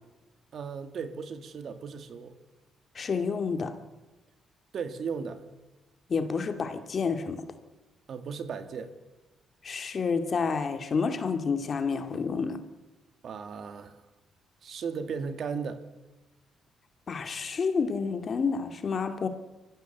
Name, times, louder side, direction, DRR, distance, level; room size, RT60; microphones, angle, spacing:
voice 1, 0.5-2.4 4.7-5.4 8.1-8.9 13.2-14.0 14.6-15.8, right 6 dB, 60° right, 2.1 m, -36 dB
voice 2, 3.0-3.8 6.1-7.5 9.6-12.6 17.1-19.3, left 5 dB, 45° left, 2.2 m, -29 dB
23.5 x 15.0 x 8.0 m
cardioid pair, 90°, 0 cm